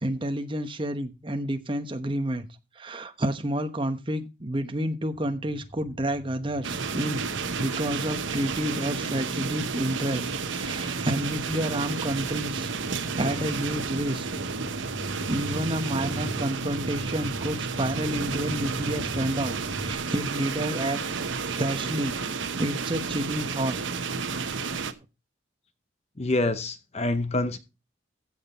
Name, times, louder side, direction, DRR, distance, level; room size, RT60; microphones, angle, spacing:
voice 1, 0.0-2.5 2.8-7.2 7.6-12.7 13.2-14.3 15.3-19.5 19.8-21.0 21.5-22.2 22.6-23.8, right 1 dB, 25° right, 1.0 m, -29 dB
sound 1, 5.1-20.0, equal, 65° left, 2.6 m, -42 dB
sound 2, 6.6-24.9, right 4 dB, 80° right, 1.0 m, -31 dB
voice 2, 26.2-27.6, left 2 dB, 35° left, 0.8 m, -26 dB
15.0 x 5.8 x 4.3 m
head